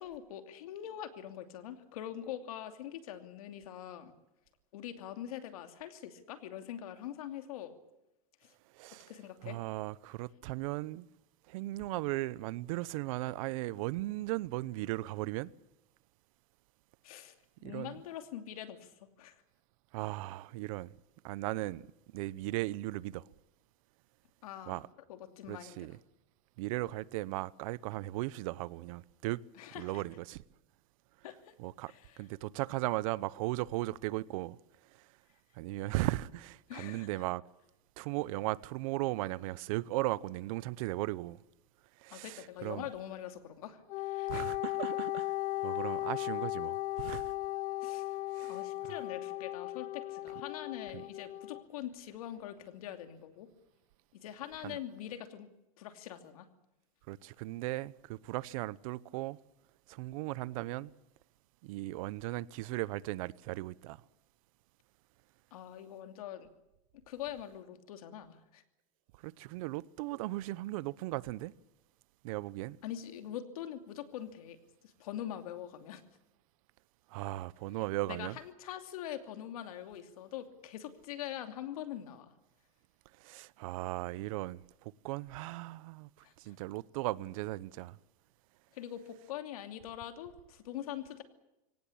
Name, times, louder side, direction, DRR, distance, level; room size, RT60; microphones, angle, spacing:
voice 1, 0.0-4.1 4.7-7.8 8.4-8.5 9.1-9.6 17.0-19.3 24.4-24.8 25.1-25.9 29.6-30.0 31.2-31.5 31.9-32.2 36.7-37.1 42.1-44.5 47.8-48.2 48.4-53.5 54.1-55.5 55.8-56.5 65.5-66.5 67.1-68.6 72.8-74.6 74.8-76.0 78.1-82.3 86.2-86.6 88.7-91.2, left 11 dB, 90° left, 2.8 m, -43 dB
voice 2, 8.7-9.1 9.4-11.1 11.5-15.5 17.6-18.0 19.9-20.9 21.2-21.9 22.1-23.3 24.7-24.9 25.5-26.0 26.6-29.4 29.8-30.4 31.6-34.6 34.8-35.1 35.5-37.4 38.0-41.4 42.0-42.8 44.3-45.3 45.6-47.3 48.3-48.9 50.9-51.0 54.6-54.8 57.1-59.4 59.9-60.9 61.6-64.0 69.2-71.5 72.2-72.8 77.1-78.4 83.1-88.0, right 18 dB, 70° right, 0.8 m, -37 dB
Wind instrument woodwind instrument, 43.9-51.6, left 17 dB, 45° left, 0.9 m, -36 dB
24.0 x 18.0 x 8.6 m
supercardioid pair, 135°, 18 cm